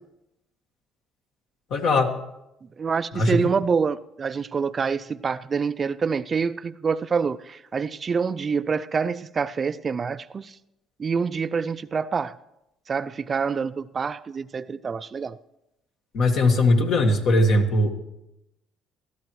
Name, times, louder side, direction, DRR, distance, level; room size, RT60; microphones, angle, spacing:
voice 1, 1.7-2.1 3.1-3.4 16.1-17.9, left 2 dB, 65° left, 4 dB, 1.8 m, -20 dB
voice 2, 2.8-10.6 11.0-12.4 12.9-15.4, right 5 dB, 35° right, 14 dB, 0.4 m, -26 dB
19.5 x 13.5 x 3.1 m, 0.89 s
supercardioid pair, 80°, 0 cm